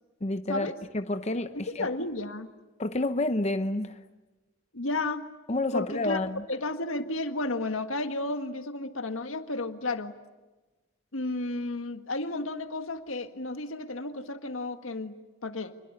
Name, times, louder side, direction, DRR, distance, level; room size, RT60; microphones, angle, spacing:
voice 1, 0.2-1.9 2.8-4.0 5.5-6.4, left 2 dB, 35° left, 0.8 m, -29 dB
voice 2, 1.5-2.5 4.7-5.3 5.7-6.2 6.5-10.1 11.1-15.1 15.4-15.7, left 2 dB, 85° left, 1.7 m, -32 dB
27.5 x 21.5 x 9.7 m
head